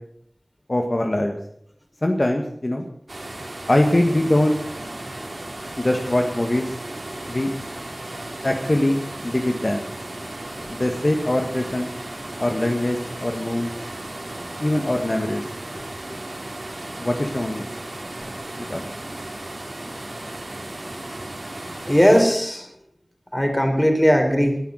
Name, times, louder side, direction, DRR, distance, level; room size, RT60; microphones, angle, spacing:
voice 1, 0.7-1.4 2.0-2.8 3.7-4.6 5.8-6.7 7.3-7.5 8.4-9.9 10.7-11.9 12.4-13.7 14.6-15.4 17.0-17.6 18.7-18.9, left 1 dB, 45° left, 3 dB, 1.7 m, -22 dB
sound 1, 3.1-22.2, right 1 dB, 65° right, 3.4 m, -35 dB
voice 2, 21.9-22.7 23.3-24.6, equal, 10° left, 4 dB, 4.0 m, -18 dB
19.5 x 10.5 x 6.4 m, 0.68 s
wide cardioid pair, 45°, 0 cm